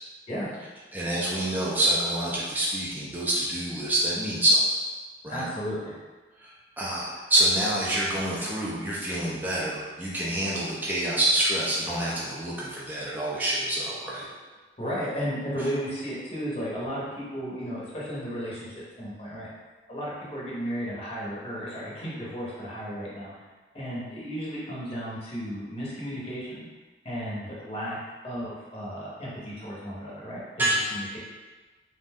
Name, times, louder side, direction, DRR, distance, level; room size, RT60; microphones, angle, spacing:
voice 1, 0.9-4.6 5.2-5.4 6.4-14.3 30.6-30.9, right 1 dB, 10° right, -7 dB, 0.4 m, -26 dB
voice 2, 5.3-6.0 14.8-19.5 19.9-23.3 23.7-26.7 27.0-28.0 28.2-31.2, equal, 35° left, -7 dB, 0.8 m, -34 dB
2.5 x 2.1 x 3.4 m, 1.3 s
head